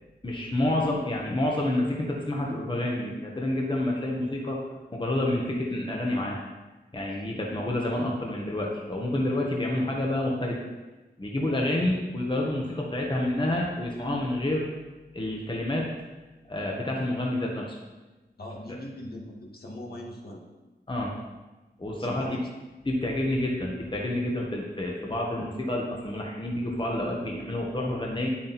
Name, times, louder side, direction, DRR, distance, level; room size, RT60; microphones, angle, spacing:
voice 1, 0.2-4.6 4.9-6.4 6.9-10.6 11.2-14.7 15.1-15.9 16.5-17.7 20.9-21.1 21.8-22.3 22.8-28.3, left 1 dB, 30° left, -2 dB, 1.5 m, -28 dB
voice 2, 18.4-20.4 22.0-22.5, left 1 dB, 65° left, -2 dB, 2.1 m, -40 dB
9.7 x 8.7 x 4.3 m, 1.2 s
wide cardioid pair, 95°, 17 cm